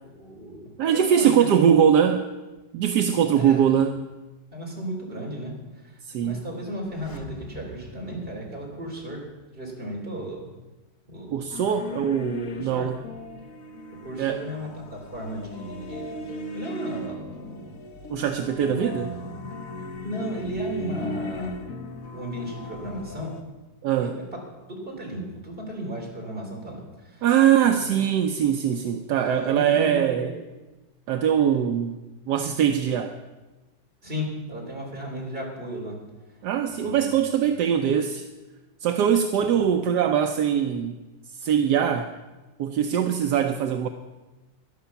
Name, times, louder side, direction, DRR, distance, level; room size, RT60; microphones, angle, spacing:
voice 1, 0.0-1.6 3.3-3.7 4.5-9.2 9.5-10.5 11.1-11.4 12.5-12.9 13.9-16.2 16.5-17.8 18.6-19.6 20.0-21.6 22.1-23.3 24.0-24.2 24.7-27.3 27.6-27.9 29.3-30.4 34.0-36.0 36.3-36.4 36.7-37.6 39.4-39.6, right 1 dB, 30° right, -1 dB, 3.7 m, -35 dB
voice 2, 0.8-2.3 2.7-4.0 6.0-6.4 11.3-13.0 14.2-14.4 18.1-19.1 23.8-24.2 27.2-30.3 31.1-32.0 32.3-33.2 36.4-38.2 38.8-41.0 41.3-42.1 42.6-43.9, right 8 dB, 75° right, 6 dB, 1.3 m, -22 dB
sound 1, 6.8-9.6 9.9-10.0, equal, 20° left, 0.7 m, -46 dB
sound 2, 11.5-23.4, left 2 dB, 55° left, 1.4 m, -37 dB
11.5 x 11.5 x 7.0 m, 1.1 s
omnidirectional pair, 1.9 m